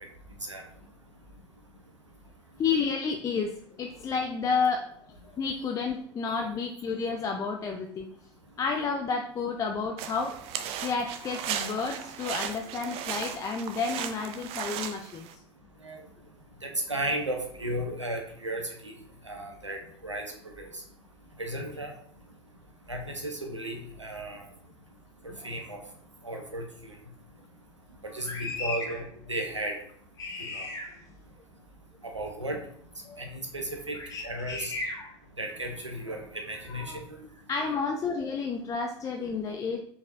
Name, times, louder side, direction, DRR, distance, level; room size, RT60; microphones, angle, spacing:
voice 1, 2.6-8.1 8.6-10.4 10.8-15.4 25.3-25.5 28.2-29.0 30.2-31.1 33.0-33.2 33.9-35.2 36.6-37.0 37.5-39.8, left 5 dB, 20° left, 3 dB, 0.4 m, -31 dB
sound 1, 10.0-15.3, right 9 dB, 40° right, 0.5 m, -36 dB
voice 2, 16.9-18.9 19.3-19.8 20.0-20.3 20.6-20.7 21.4-21.9 22.9-24.4 25.2-25.8 26.2-26.6 28.1-29.0 29.3-29.7 30.6-30.7 32.1-32.6 33.2-33.9 34.2-34.7 35.4-37.0, right 1 dB, 90° right, 2 dB, 0.9 m, -34 dB
5.1 x 4.0 x 2.6 m, 0.64 s
figure-of-eight pair, 80°, 15 cm